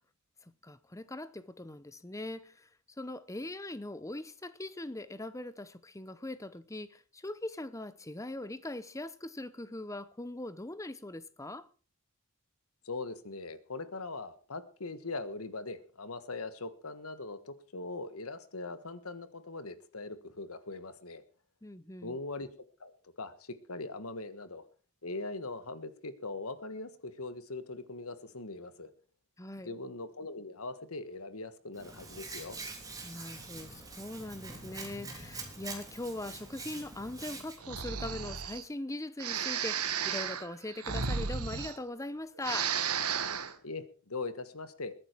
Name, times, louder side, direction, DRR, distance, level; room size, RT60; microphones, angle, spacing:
voice 1, 0.4-2.7 3.0-11.7 21.6-22.2 29.4-29.7 33.0-42.7, left 1 dB, 15° left, 0.8 m, -41 dB
voice 2, 12.8-21.2 22.0-22.5 22.8-24.6 25.0-28.9 29.6-32.6 43.6-44.9, left 3 dB, 70° left, 1.5 m, -41 dB
Hands, 31.7-37.6, right 3 dB, 15° right, 3.3 m, -45 dB
Breathing, 37.6-38.6 39.2-42.1 42.4-43.5, right 7 dB, 85° right, 1.5 m, -34 dB
21.5 x 9.8 x 4.6 m
head